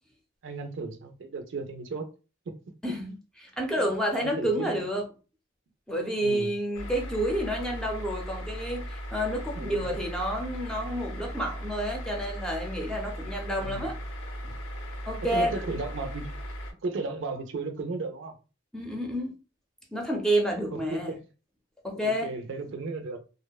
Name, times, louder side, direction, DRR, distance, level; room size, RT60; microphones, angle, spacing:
voice 1, 0.4-2.1 2.5-2.6 4.2-4.9 6.1-6.5 9.6-10.0 13.6-13.9 15.3-16.3 16.8-18.3 20.7-21.2 21.9-23.2, right 3 dB, 75° right, 0.4 m, -35 dB
voice 2, 2.8-5.0 5.9-13.9 15.1-15.6 18.7-19.3 19.9-21.1 21.8-22.3, equal, 5° left, 0.5 m, -29 dB
sound 1, 6.7-16.7, equal, 75° left, 0.6 m, -37 dB
2.7 x 2.1 x 2.2 m
head